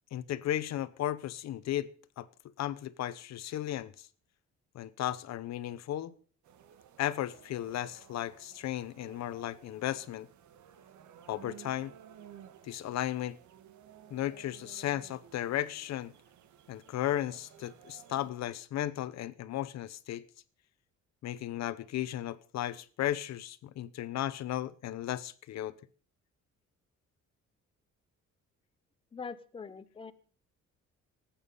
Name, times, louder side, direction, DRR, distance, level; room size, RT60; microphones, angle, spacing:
voice 1, 0.1-1.9 2.2-2.3 2.6-4.1 4.7-6.1 7.0-10.3 11.3-11.9 12.6-13.4 14.1-16.1 16.7-20.3 21.2-25.7, left 12 dB, 65° left, 17 dB, 0.9 m, -35 dB
sound 1, 6.4-18.3, right 9 dB, 75° right, 1.4 m, -56 dB
voice 2, 29.1-30.1, left 5 dB, 20° left, 12 dB, 0.8 m, -43 dB
18.0 x 8.7 x 5.5 m, 0.43 s
cardioid pair, 165°, 29 cm